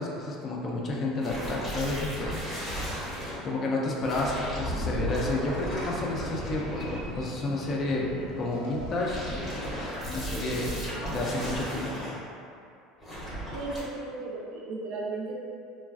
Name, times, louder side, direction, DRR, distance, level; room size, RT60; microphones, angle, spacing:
voice 1, 0.0-2.4 3.4-8.1 8.4-9.2 9.5-12.0, left 2 dB, 30° left, -2 dB, 0.3 m, -31 dB
sound 1, 1.2-3.4 4.0-7.4 8.7-12.1 13.0-13.8, equal, 5° left, 0.7 m, -35 dB
sound 2, 4.2-11.6, left 2 dB, 85° left, 0.5 m, -49 dB
sound 3, 4.4-4.7 5.4-10.4, right 1 dB, 85° right, 1.0 m, -44 dB
voice 2, 13.5-15.4, right 3 dB, 65° right, -4 dB, 0.5 m, -35 dB
3.2 x 2.3 x 2.3 m, 2.5 s
cardioid pair, 160°, 0 cm